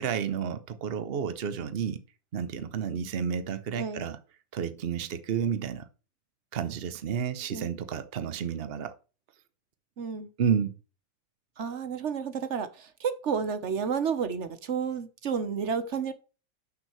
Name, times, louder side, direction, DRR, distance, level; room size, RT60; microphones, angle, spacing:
voice 1, 0.0-2.0 2.3-4.2 4.5-5.9 6.5-9.0 10.4-10.7, right 7 dB, 90° right, 0.5 m, -31 dB
voice 2, 10.0-10.3 11.6-16.1, right 6 dB, 45° right, 1.0 m, -31 dB
11.0 x 6.3 x 3.2 m
omnidirectional pair, 2.1 m